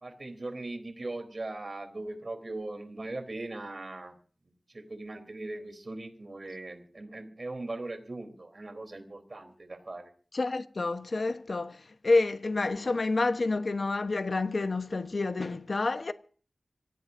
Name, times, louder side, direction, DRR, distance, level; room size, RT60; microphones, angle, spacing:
voice 1, 0.0-4.2 4.7-10.1, right 2 dB, 50° right, 3.7 m, -39 dB
voice 2, 10.3-16.1, left 3 dB, 65° left, 1.1 m, -29 dB
26.0 x 17.5 x 2.7 m
wide cardioid pair, 80°, 0 cm